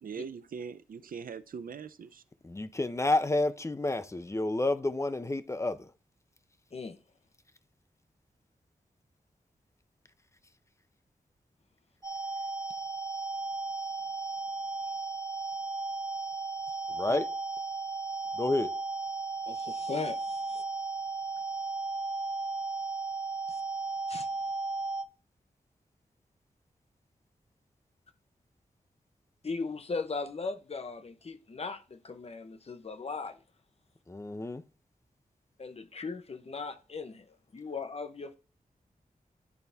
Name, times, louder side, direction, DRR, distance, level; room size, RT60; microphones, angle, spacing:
voice 1, 0.0-2.2, right 6 dB, 75° right, 0.5 m, -41 dB
voice 2, 2.4-5.9 17.0-17.3 18.4-18.7 34.1-34.6, left 2 dB, 20° left, 0.6 m, -30 dB
sound 1, 12.0-25.0, right 3 dB, 30° right, 1.2 m, -35 dB
voice 3, 19.5-20.6 24.1-24.3 29.4-33.4 35.6-37.2 37.5-38.4, left 4 dB, 45° left, 0.9 m, -38 dB
10.5 x 4.1 x 3.4 m
wide cardioid pair, 130°, 15 cm